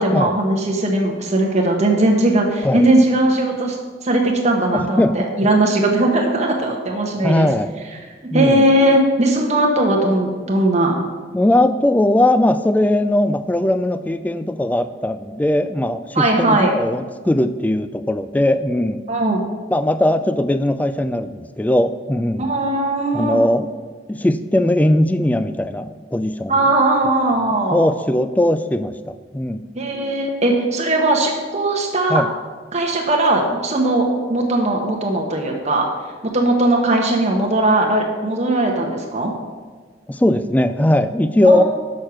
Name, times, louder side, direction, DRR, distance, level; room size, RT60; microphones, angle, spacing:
voice 1, 0.0-3.8 4.0-7.5 8.3-10.9 16.1-16.7 19.1-19.4 22.4-23.4 26.5-27.8 29.7-32.2 32.7-35.9 36.3-39.3 41.4-41.6, right 1 dB, 40° right, 1 dB, 1.1 m, -18 dB
voice 2, 4.7-5.3 7.2-7.7 8.3-8.6 11.3-19.0 19.7-22.5 23.1-23.7 24.1-26.6 27.4-29.6 32.1-32.3 40.1-41.6, left 1 dB, 10° left, 12 dB, 0.3 m, -19 dB
6.5 x 6.3 x 5.8 m, 1.4 s
head